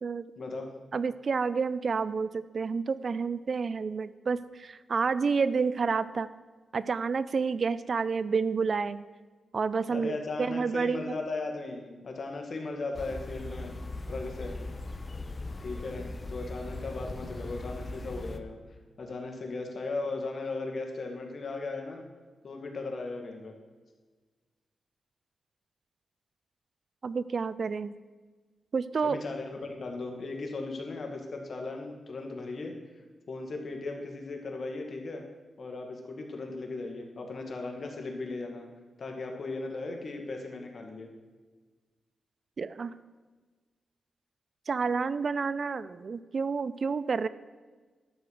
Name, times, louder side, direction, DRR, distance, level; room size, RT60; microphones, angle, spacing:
voice 1, 0.4-0.7 9.9-13.8 14.1-14.6 15.6-18.6 19.0-22.0 22.4-23.5 29.0-32.7 33.3-35.2 35.6-38.6 39.0-41.1, left 3 dB, 55° left, 2 dB, 2.0 m, -37 dB
voice 2, 0.9-6.3 6.7-9.1 9.5-10.1 10.4-11.2 27.0-27.9 28.7-29.2 42.6-43.0 44.7-47.3, right 5 dB, 55° right, 16 dB, 0.4 m, -29 dB
sound 1, 12.9-18.4, left 2 dB, 35° left, 0.7 m, -39 dB
12.0 x 4.8 x 7.9 m, 1.4 s
cardioid pair, 85°, 0 cm